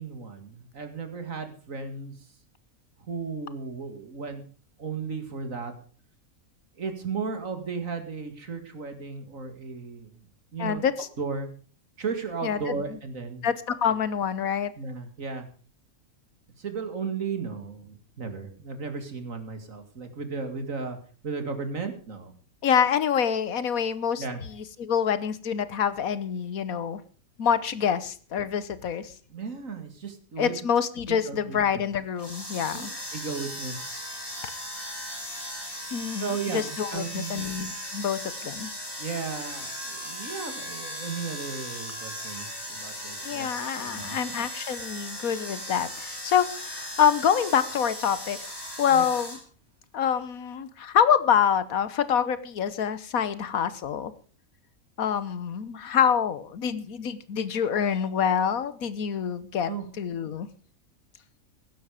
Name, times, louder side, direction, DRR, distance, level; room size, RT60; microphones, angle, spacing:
voice 1, 0.0-2.2 3.1-4.4 4.8-5.7 6.8-10.1 10.5-10.8 11.2-11.5 12.0-13.4 14.8-15.5 16.6-21.0 21.2-22.3 24.2-24.4 29.3-30.5 31.1-31.6 32.7-32.9 33.1-33.9 36.2-37.4 39.0-44.2 48.9-49.1 59.7-59.8, right 5 dB, 65° right, 7 dB, 2.6 m, -35 dB
voice 2, 10.6-11.1 12.4-13.0 13.4-14.7 22.6-27.0 27.4-29.1 30.4-32.9 35.9-38.7 43.2-48.4 48.8-49.4 49.9-54.1 55.0-60.5, left 8 dB, 75° left, 15 dB, 1.5 m, -26 dB
sound 1, 32.2-49.4, equal, 15° left, 4.7 m, -37 dB
16.0 x 12.0 x 5.0 m, 0.41 s
omnidirectional pair, 1.5 m